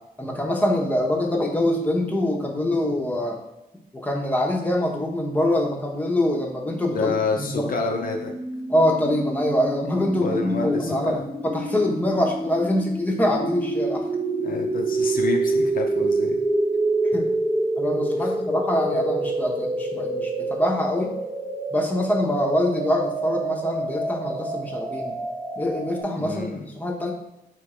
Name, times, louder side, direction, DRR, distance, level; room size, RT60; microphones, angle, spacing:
voice 1, 0.2-3.4 3.9-7.7 8.7-11.2 11.4-14.1 17.1-17.3 17.8-21.2 21.7-25.2 25.6-27.1, left 1 dB, 10° left, -1 dB, 0.9 m, -24 dB
voice 2, 6.9-8.3 10.2-11.3 14.4-16.4 26.2-26.7, left 4 dB, 65° left, 2 dB, 0.6 m, -28 dB
sound 1, 6.9-26.0, right 2 dB, 25° right, 0.8 m, -27 dB
3.5 x 2.9 x 4.3 m, 0.91 s
cardioid pair, 80°, 16 cm